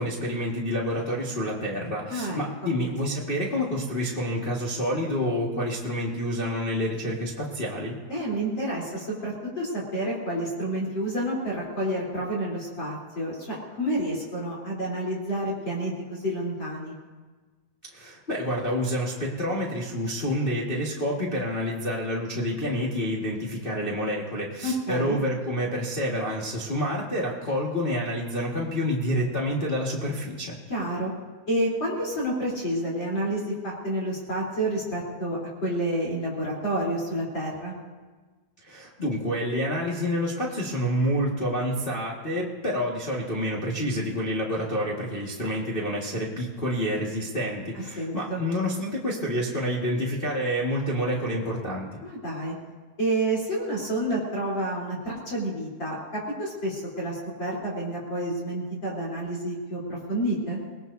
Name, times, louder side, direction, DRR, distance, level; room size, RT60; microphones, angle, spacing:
voice 1, 0.0-8.0 17.9-30.6 38.6-51.9, equal, 80° left, -4 dB, 0.5 m, -28 dB
voice 2, 2.1-2.7 8.1-17.0 24.6-25.2 30.7-31.1 31.5-37.7 48.0-48.4 52.0-52.6 53.0-60.6, right 1 dB, 30° left, -5 dB, 4.0 m, -29 dB
27.5 x 19.0 x 2.7 m, 1.3 s
omnidirectional pair, 4.4 m